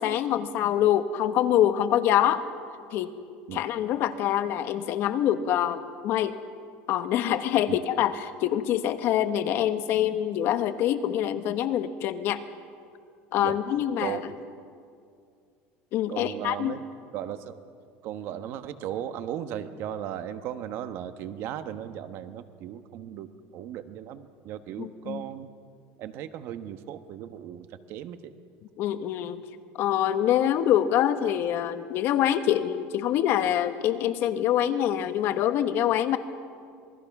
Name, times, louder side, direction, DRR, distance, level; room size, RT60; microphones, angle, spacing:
voice 1, 0.0-2.4 2.9-3.1 3.5-6.4 6.9-12.4 13.3-14.2 15.9-16.8 24.8-25.2 28.8-29.4 29.8-36.2, left 11 dB, 50° left, 10 dB, 1.2 m, -25 dB
voice 2, 14.0-14.3 16.1-16.8 17.1-17.5 18.0-25.5 26.0-28.3, right 10 dB, 55° right, 10 dB, 1.2 m, -36 dB
27.0 x 20.0 x 6.0 m, 2.3 s
cardioid pair, 150°, 5 cm